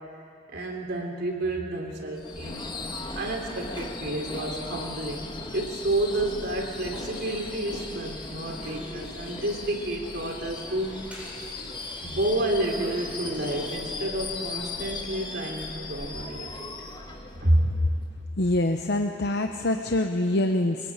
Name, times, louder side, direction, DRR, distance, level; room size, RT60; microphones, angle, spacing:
voice 1, 0.5-2.7 3.1-10.9 12.0-16.9 17.4-17.7, right 1 dB, 60° right, 1 dB, 3.5 m, -29 dB
Subway metro underground / Screech, 2.2-18.1, left 3 dB, 25° left, 1.8 m, -38 dB
sound 1, 5.8-15.0, equal, 5° right, 7.7 m, -49 dB
voice 2, 18.4-20.9, left 1 dB, 55° left, 5 dB, 0.9 m, -25 dB
23.0 x 21.5 x 9.0 m, 2.6 s
head